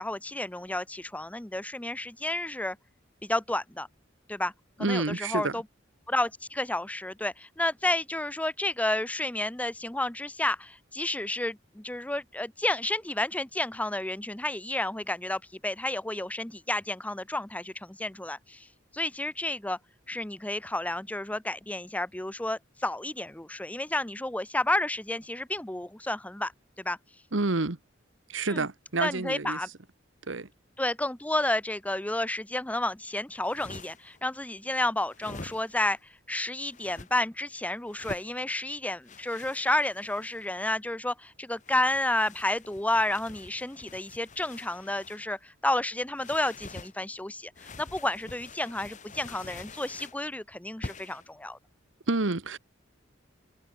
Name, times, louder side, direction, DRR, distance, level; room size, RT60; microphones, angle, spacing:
voice 1, 0.0-2.8 3.2-3.9 4.3-4.5 4.8-5.6 6.1-18.7 18.9-19.8 20.1-26.5 26.8-27.0 28.5-28.6 29.0-29.7 30.8-51.6, left 1 dB, 5° left, 0.7 m, -31 dB
voice 2, 4.8-5.6 27.3-27.8 28.3-29.6 30.3-30.5 52.1-52.6, right 3 dB, 75° right, 1.3 m, -28 dB
sound 1, 33.3-34.2 35.1-36.0 36.7-37.1 37.9-38.3 39.1-40.5 41.5-45.3 46.2-46.9 47.5-50.2 50.8-51.3, left 3 dB, 40° left, 1.7 m, -46 dB
head